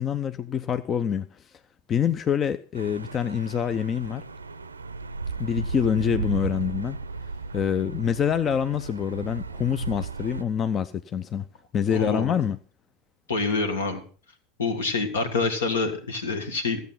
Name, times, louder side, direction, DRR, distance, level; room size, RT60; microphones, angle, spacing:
voice 1, 0.0-1.5 1.9-4.2 5.4-7.0 7.5-11.5 11.7-12.6, left 8 dB, 35° left, 0.5 m, -26 dB
sound 1, 2.7-10.4, right 4 dB, 85° right, 0.5 m, -35 dB
voice 2, 11.9-12.3 13.3-14.0 14.6-16.9, left 4 dB, 75° left, 2.0 m, -26 dB
14.0 x 8.1 x 5.8 m
figure-of-eight pair, 80°, 0 cm